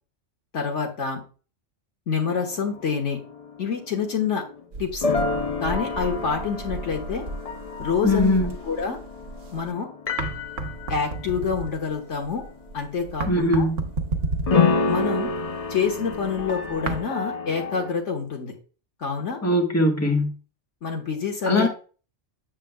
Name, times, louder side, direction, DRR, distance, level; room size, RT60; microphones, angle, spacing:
voice 1, 0.5-1.2 2.1-3.2 3.6-4.4 4.8-5.0 5.6-7.2 7.8-8.3 8.7-9.0 9.5-9.9 10.9-12.4 12.7-13.6 14.8-15.3 15.7-18.5 19.0-19.4 20.8-21.7, left 6 dB, 70° left, 1 dB, 1.6 m, -27 dB
sound 1, 2.2-12.5 13.0-13.1 14.5-17.9, left 4 dB, 45° left, 0.5 m, -29 dB
sound 2, 4.7-9.7 10.1-17.0, right 3 dB, 75° right, 1.2 m, -33 dB
voice 2, 8.0-8.5 13.3-13.8 19.4-20.3 21.4-21.7, left 1 dB, 10° left, 1 dB, 1.4 m, -21 dB
7.6 x 7.3 x 2.2 m, 0.36 s
omnidirectional pair, 1.3 m